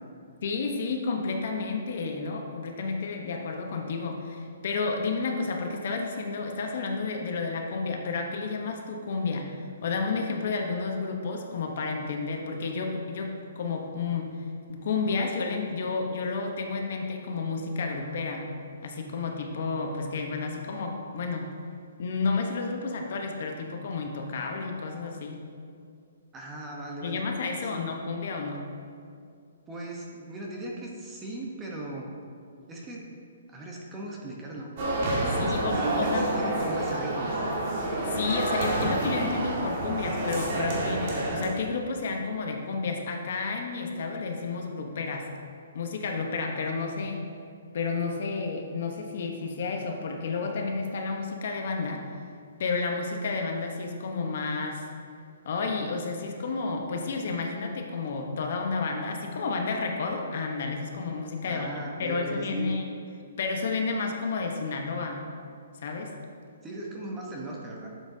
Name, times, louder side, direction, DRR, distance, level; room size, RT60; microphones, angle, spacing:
voice 1, 0.4-9.5 9.8-14.3 14.7-18.5 18.8-21.5 22.0-25.4 27.0-28.7 35.3-36.3 38.1-41.1 41.3-45.3 45.7-47.2 47.7-52.0 52.6-54.8 55.4-61.7 62.0-62.9 63.4-65.2 65.8-66.1, left 4 dB, 50° left, 3 dB, 1.0 m, -31 dB
voice 2, 26.3-27.3 27.7-27.8 29.7-32.1 32.7-33.2 33.5-34.7 35.4-37.5 61.4-62.7 66.6-67.9, right 2 dB, 10° right, -2 dB, 0.9 m, -38 dB
sound 1, 34.8-41.5, right 1 dB, 40° right, 1.9 m, -28 dB
11.5 x 7.4 x 2.8 m, 2.3 s
hypercardioid pair, 165°, 0 cm